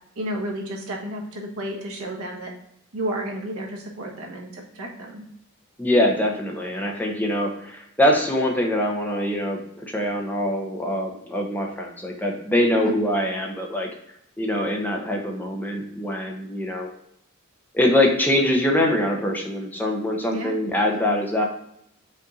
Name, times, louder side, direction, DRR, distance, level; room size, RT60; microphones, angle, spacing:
voice 1, 0.2-2.5 2.9-5.2 12.7-13.0 20.3-20.6, right 1 dB, 90° right, 0 dB, 1.2 m, -32 dB
voice 2, 5.8-13.9 14.4-16.9 17.7-21.5, left 1 dB, 10° left, 1 dB, 0.7 m, -23 dB
5.3 x 2.6 x 3.9 m, 0.76 s
head